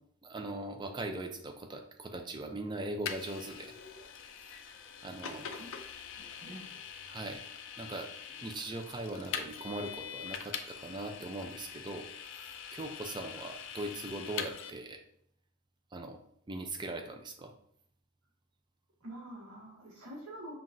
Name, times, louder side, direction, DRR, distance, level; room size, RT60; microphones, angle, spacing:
voice 1, 0.2-3.8 5.0-5.5 7.1-7.4 7.8-12.1 12.7-15.0 15.9-16.2 16.5-17.5, right 2 dB, 20° right, 4 dB, 0.4 m, -40 dB
Vehicle, 3.1-14.7, left 7 dB, 60° left, 0.4 m, -43 dB
voice 2, 6.2-6.8 19.0-20.6, right 1 dB, 70° right, -3 dB, 1.3 m, -46 dB
5.7 x 2.4 x 2.6 m, 0.68 s
head